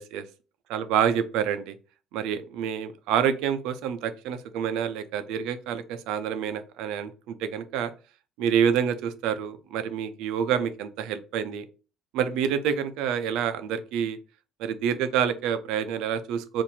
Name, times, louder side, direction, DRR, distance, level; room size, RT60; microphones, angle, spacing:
voice 1, 0.7-1.8 2.1-7.9 8.4-11.6 12.1-14.2 14.6-16.6, right 8 dB, 85° right, 11 dB, 0.4 m, -27 dB
2.8 x 2.5 x 4.0 m, 0.35 s
cardioid pair, 105°, 0 cm